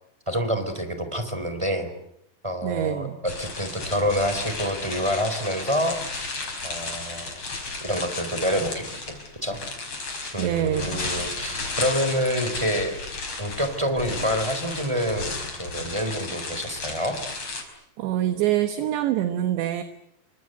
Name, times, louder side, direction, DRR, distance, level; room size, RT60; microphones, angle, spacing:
voice 1, 0.3-1.9 2.4-6.4 6.6-7.4 7.8-9.1 9.4-9.6 10.3-13.1 13.4-17.2, equal, 5° right, 8 dB, 3.3 m, -27 dB
voice 2, 2.6-3.2 10.4-11.0 18.0-19.8, right 12 dB, 75° right, 9 dB, 3.5 m, -25 dB
sound 1, 3.3-17.6, left 3 dB, 30° left, 5.9 m, -34 dB
29.0 x 25.5 x 8.0 m, 0.77 s
omnidirectional pair, 5.4 m